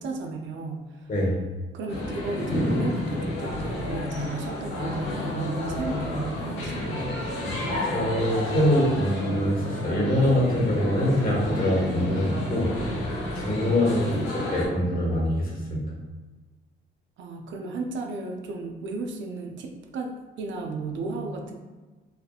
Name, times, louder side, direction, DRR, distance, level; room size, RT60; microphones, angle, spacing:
voice 1, 0.0-1.1 1.7-7.3 14.0-14.3 17.2-21.5, right 3 dB, 70° right, 3 dB, 0.4 m, -34 dB
sound 1, 1.9-14.6, left 1 dB, 90° left, 0.8 m, -30 dB
voice 2, 7.9-12.7 13.3-14.2 14.5-15.9, left 1 dB, 45° left, -5 dB, 1.3 m, -24 dB
3.5 x 2.2 x 2.2 m, 1.3 s
cardioid pair, 90°, 20 cm